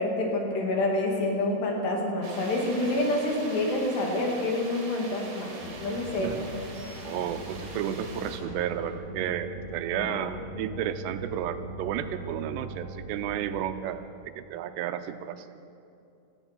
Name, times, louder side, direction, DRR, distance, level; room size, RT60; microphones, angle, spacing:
voice 1, 0.0-6.3 10.0-10.2, left 2 dB, 75° left, 0 dB, 4.3 m, -28 dB
sound 1, 2.2-8.4, right 3 dB, 60° right, 3.8 m, -43 dB
sound 2, 5.6-13.6, right 1 dB, 50° left, 6.2 m, -40 dB
voice 2, 6.2-6.5 7.0-14.0 14.4-15.5, right 10 dB, 90° right, 9 dB, 2.8 m, -32 dB
17.5 x 13.5 x 5.8 m, 2.5 s
omnidirectional pair, 4.9 m